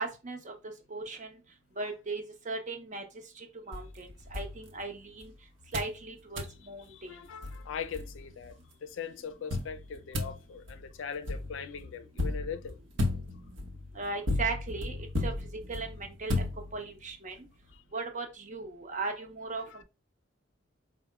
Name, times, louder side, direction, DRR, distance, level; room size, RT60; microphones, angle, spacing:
voice 1, 0.0-1.4 1.8-3.0 3.4-5.3 5.7-7.2 13.9-15.0 15.2-15.3 15.7-16.3 16.7-17.5 17.9-19.8, right 3 dB, 40° right, 0.7 m, -37 dB
sound 1, 3.7-5.3 5.7-6.0 6.4-6.6 7.1-7.2 7.4-8.5 9.5-17.1, left 2 dB, 80° right, 0.8 m, -35 dB
voice 2, 6.9-12.8 17.7-17.8 19.6-19.8, left 6 dB, 90° left, 0.4 m, -41 dB
4.7 x 2.1 x 3.1 m
head